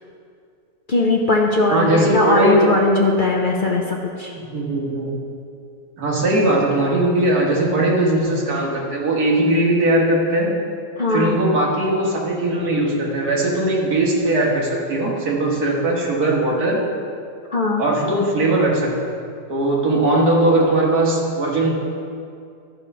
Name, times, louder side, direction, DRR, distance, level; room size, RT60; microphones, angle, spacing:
voice 1, 0.9-4.3 11.0-11.4 17.5-17.8, left 2 dB, 65° left, -1 dB, 0.5 m, -19 dB
voice 2, 1.7-2.7 4.3-5.2 6.0-10.5 11.1-16.8 17.8-19.2 19.5-21.7, right 1 dB, 65° right, -3 dB, 2.1 m, -19 dB
13.0 x 4.6 x 5.4 m, 2.4 s
omnidirectional pair, 1.8 m